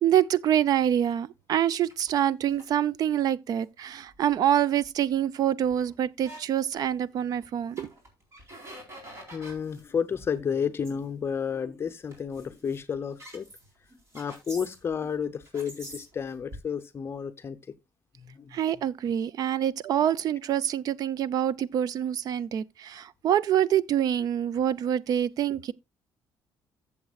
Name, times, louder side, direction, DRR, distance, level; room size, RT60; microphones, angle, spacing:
voice 1, 0.0-7.9 18.5-25.7, right 10 dB, 55° right, 0.5 m, -26 dB
sound 1, 1.9-2.7 3.6-3.7 4.1-4.3 4.8-4.9 5.1-5.2 5.6-6.4 6.7-6.9 7.3-7.5 7.8-9.8 10.1-10.4 10.8-10.9 11.5-11.7 12.1-15.1 15.4-16.6, right 1 dB, 35° right, 4.1 m, -46 dB
voice 2, 9.3-13.5 14.1-17.6 18.2-18.6, left 7 dB, 30° left, 0.7 m, -31 dB
14.5 x 7.4 x 2.4 m
cardioid pair, 130°, 8 cm